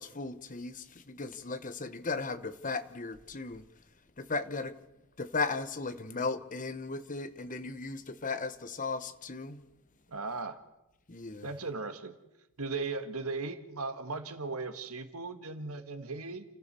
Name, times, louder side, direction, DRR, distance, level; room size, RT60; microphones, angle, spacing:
voice 1, 0.0-3.6 4.2-4.7 5.2-9.6 11.1-11.5, left 4 dB, 35° left, 1.1 m, -36 dB
voice 2, 10.1-10.6 11.4-12.1 12.6-16.5, right 3 dB, 75° right, 1.8 m, -37 dB
29.5 x 14.5 x 6.9 m
head